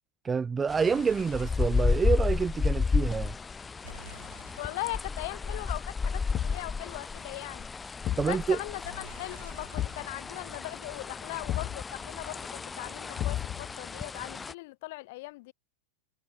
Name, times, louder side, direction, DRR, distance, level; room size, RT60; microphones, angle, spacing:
voice 1, 0.2-3.4 8.2-8.6, right 5 dB, 15° right, 1.2 m, -27 dB
sound 1, 0.7-14.5, left 5 dB, 15° left, 1.1 m, -32 dB
sound 2, 0.8-2.1 3.8-6.6 8.8-11.6, right 2 dB, 85° right, 4.1 m, -53 dB
voice 2, 4.6-7.7 8.1-15.5, left 22 dB, 50° left, 5.4 m, -39 dB
Thump thud, 6.3-6.8 8.0-8.4 9.7-10.1 11.5-11.8 13.2-13.7, left 12 dB, 30° left, 0.8 m, -32 dB
figure-of-eight pair, 90°, 0 cm